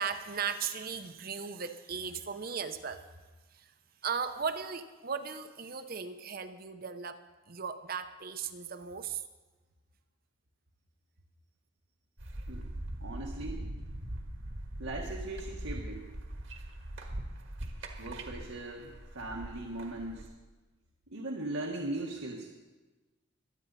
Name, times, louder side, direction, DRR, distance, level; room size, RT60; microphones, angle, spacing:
voice 1, 0.0-3.0 3.5-3.7 4.0-7.2 7.5-9.2, right 6 dB, 45° right, 0.7 m, -37 dB
sound 1, 12.2-20.3, right 1 dB, 70° right, 1.6 m, -41 dB
voice 2, 13.0-13.7 14.8-16.1 18.0-20.3 21.1-22.5, right 2 dB, 90° right, 1.6 m, -39 dB
23.5 x 9.4 x 4.1 m
head